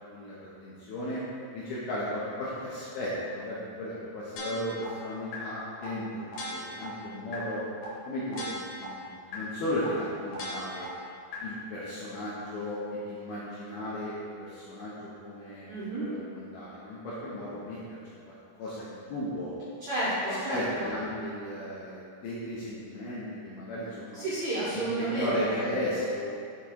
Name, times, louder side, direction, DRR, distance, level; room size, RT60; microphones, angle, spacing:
voice 1, 0.6-1.2 1.5-7.6 8.1-8.5 8.7-10.9 11.4-15.0 15.2-15.7 16.0-18.0 18.3-19.5 20.5-24.2 24.9-26.3, left 1 dB, 80° left, -8 dB, 2.3 m, -35 dB
sound 1, 4.4-4.8 5.3-5.4 5.8-5.9 6.3-6.8 7.3-7.4 7.8-7.9 8.3-8.8 9.3-9.4 9.8-9.9 10.3-10.8 11.3-11.4, left 1 dB, 65° left, 2.1 m, -37 dB
voice 2, 15.7-16.1 19.8-20.9 24.1-25.7, right 1 dB, 80° right, -10 dB, 1.6 m, -31 dB
8.1 x 3.6 x 4.3 m, 2.5 s
omnidirectional pair, 5.3 m